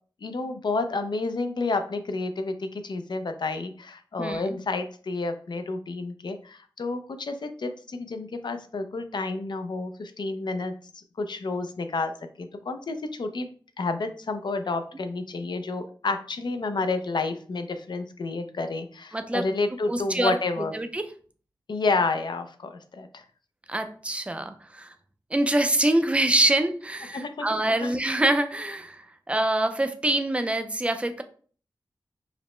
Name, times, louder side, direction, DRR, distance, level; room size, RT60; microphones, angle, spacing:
voice 1, 0.2-10.7 11.2-12.1 12.4-13.5 13.8-20.7 21.7-23.2 27.1-27.5 27.8-27.9, left 3 dB, 60° left, 8 dB, 0.5 m, -30 dB
voice 2, 19.1-19.5 19.9-20.4 20.7-21.1 23.7-24.9 25.3-29.0 29.3-31.2, right 1 dB, 15° right, 8 dB, 0.4 m, -25 dB
4.9 x 2.1 x 3.1 m, 0.43 s
wide cardioid pair, 100°, 8 cm